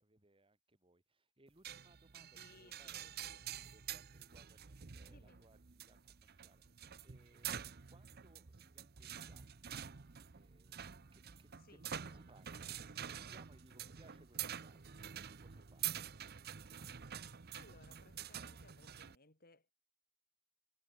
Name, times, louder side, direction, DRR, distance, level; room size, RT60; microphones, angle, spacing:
voice 1, 0.0-3.1 3.7-9.8 10.3-16.0, right 2 dB, 25° right, 2.7 m, -67 dB
sound 1, 1.6-19.2, right 9 dB, 50° right, 0.8 m, -47 dB
voice 2, 2.3-3.4 5.1-5.4 11.6-11.8 17.5-19.7, left 3 dB, 45° left, 5.0 m, -64 dB
head